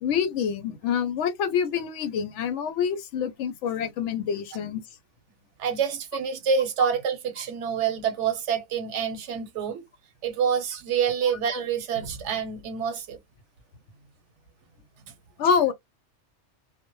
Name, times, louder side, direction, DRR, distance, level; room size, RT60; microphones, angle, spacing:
voice 1, 0.0-4.8 11.5-11.6 15.4-15.7, left 7 dB, 85° left, 0.9 m, -26 dB
voice 2, 5.6-9.8 10.2-13.2, right 7 dB, 80° right, 1.0 m, -27 dB
2.1 x 2.1 x 2.9 m
omnidirectional pair, 1.2 m